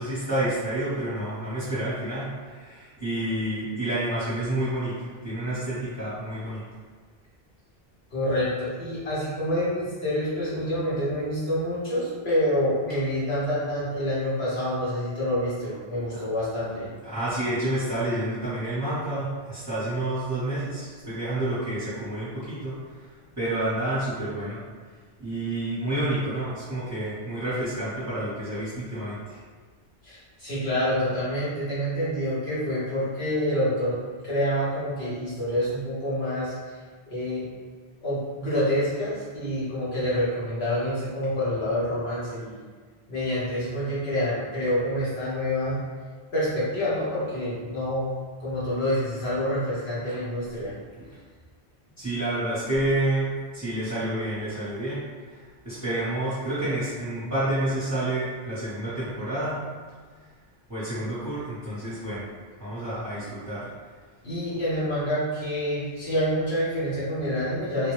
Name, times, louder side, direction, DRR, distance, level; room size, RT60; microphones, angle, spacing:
voice 1, 0.0-6.6 17.0-23.1 23.4-24.6 25.2-29.4 51.0-51.1 52.0-59.6 60.7-62.2 62.6-63.6, right 1 dB, 15° right, -14 dB, 1.0 m, -29 dB
voice 2, 8.1-16.9 30.0-36.8 37.1-37.5 38.0-42.6 43.1-45.8 46.3-48.1 48.4-50.7 64.2-67.9, left 1 dB, 75° left, -10 dB, 1.6 m, -27 dB
3.7 x 2.2 x 3.1 m, 1.5 s
omnidirectional pair, 1.1 m